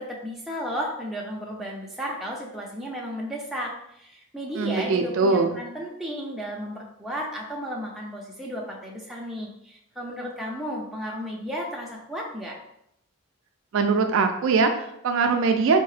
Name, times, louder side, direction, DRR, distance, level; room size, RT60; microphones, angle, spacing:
voice 1, 0.0-12.6, equal, ahead, -3 dB, 0.5 m, -34 dB
voice 2, 4.6-5.6 13.7-15.8, right 4 dB, 60° right, 5 dB, 0.3 m, -22 dB
4.5 x 2.1 x 3.2 m, 0.78 s
head